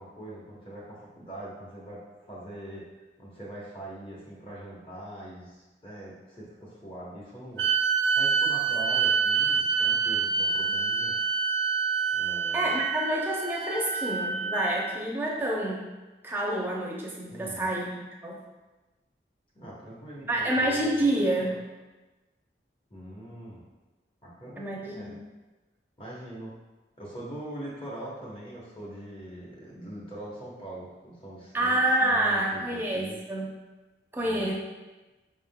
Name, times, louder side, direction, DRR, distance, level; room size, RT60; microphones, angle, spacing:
voice 1, 0.0-2.8 3.2-11.2 12.1-12.8 17.3-17.7 19.5-21.6 22.9-23.6 24.2-25.2 26.0-26.5 27.0-33.2 34.2-34.5, right 1 dB, 30° left, -6 dB, 0.9 m, -42 dB
sound 1, 7.6-15.1, right 6 dB, 70° right, 0.3 m, -27 dB
voice 2, 12.5-15.8 16.2-18.4 20.3-21.6 24.6-25.2 31.5-33.5 34.1-34.5, right 1 dB, 10° right, -3 dB, 0.5 m, -28 dB
5.0 x 3.5 x 2.2 m, 1.2 s
head